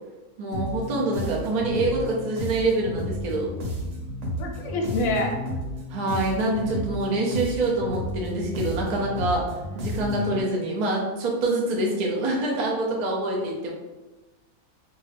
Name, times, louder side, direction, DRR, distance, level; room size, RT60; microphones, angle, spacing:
voice 1, 0.4-3.5 5.9-9.4 9.7-13.7, right 2 dB, 80° right, -3 dB, 0.3 m, -25 dB
sound 1, 0.5-10.4, left 1 dB, 60° right, 1.1 m, -32 dB
voice 2, 4.4-5.3, left 2 dB, 70° left, 2 dB, 0.9 m, -26 dB
2.6 x 2.3 x 3.3 m, 1.1 s
omnidirectional pair, 1.6 m